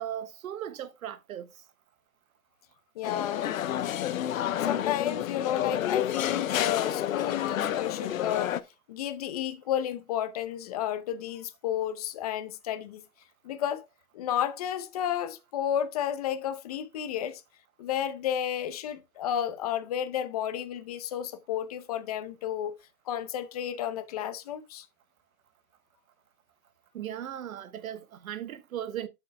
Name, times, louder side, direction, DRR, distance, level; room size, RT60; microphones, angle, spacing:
voice 1, 0.0-1.5 26.9-29.1, right 10 dB, 65° right, 1.3 m, -37 dB
sound 1, 3.0-8.6, left 11 dB, 60° left, 0.9 m, -29 dB
voice 2, 3.0-3.5 4.6-8.6 8.9-13.0 13.4-13.8 14.1-17.4 17.8-22.7 23.1-24.9, left 10 dB, 25° left, 0.7 m, -32 dB
12.5 x 6.6 x 2.2 m
hypercardioid pair, 160°, 45 cm